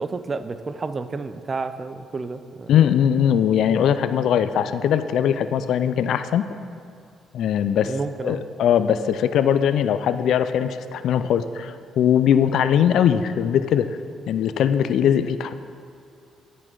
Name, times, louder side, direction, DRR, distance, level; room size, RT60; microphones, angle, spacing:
voice 1, 0.0-2.7 7.9-8.4, right 4 dB, 35° right, 11 dB, 0.3 m, -30 dB
voice 2, 2.7-6.5 7.3-7.9 8.2-14.0 14.3-15.5, left 9 dB, 75° left, 11 dB, 0.3 m, -20 dB
11.0 x 4.1 x 4.5 m, 2.4 s
cardioid pair, 90°, 0 cm